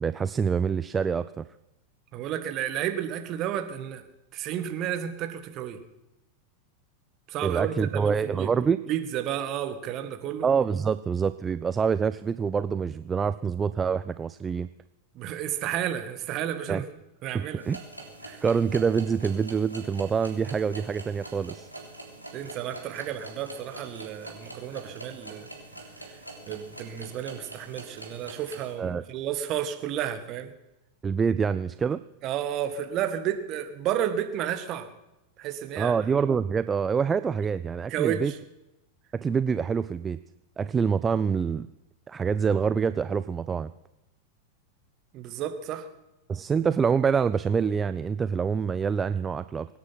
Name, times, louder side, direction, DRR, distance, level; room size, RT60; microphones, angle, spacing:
voice 1, 0.0-1.5 7.4-8.8 10.4-14.7 16.7-16.8 17.3-17.8 18.4-21.7 28.8-29.0 31.0-32.0 35.8-38.3 39.1-40.2 40.6-41.7 42.1-43.7 46.3-49.7, right 6 dB, 20° right, 14 dB, 0.5 m, -26 dB
voice 2, 2.1-4.0 4.3-5.8 7.3-8.5 8.9-10.5 15.1-16.8 17.2-17.7 18.2-18.4 22.3-25.5 26.1-26.2 26.5-30.5 32.2-34.9 35.4-36.0 37.9-38.4 45.1-45.9, right 10 dB, 35° right, 8 dB, 1.8 m, -32 dB
sound 1, 17.6-28.7, right 2 dB, 90° right, 3.4 m, -44 dB
24.5 x 9.7 x 5.9 m, 0.93 s
figure-of-eight pair, 90°, 0 cm